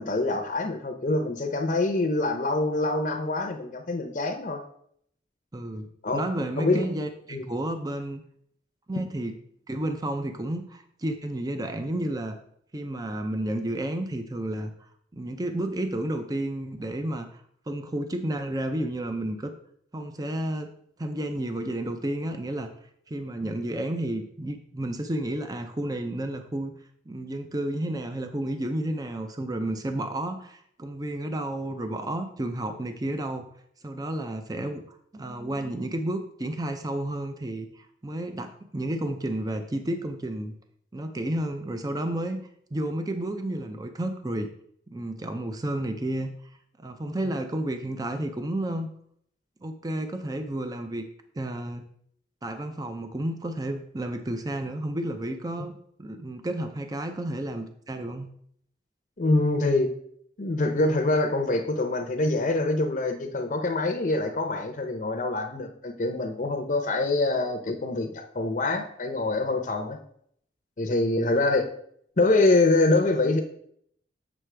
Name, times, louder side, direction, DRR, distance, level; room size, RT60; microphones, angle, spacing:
voice 1, 0.0-4.6 6.0-6.2 6.6-6.9 7.3-7.5 55.6-55.7 59.2-59.9 60.4-70.0 70.8-71.7 72.2-73.4, left 2 dB, 45° left, 5 dB, 0.7 m, -25 dB
voice 2, 5.5-5.9 6.1-8.2 8.9-9.3 9.7-12.4 12.7-14.7 15.1-17.4 17.7-19.5 19.9-20.7 21.0-22.7 23.1-26.7 27.1-33.5 33.8-40.5 40.9-42.4 42.7-44.5 44.9-46.3 46.8-48.9 49.6-51.0 51.3-51.8 52.4-55.7 56.0-58.3, right 1 dB, 20° right, 6 dB, 0.5 m, -31 dB
7.4 x 6.1 x 3.3 m, 0.67 s
head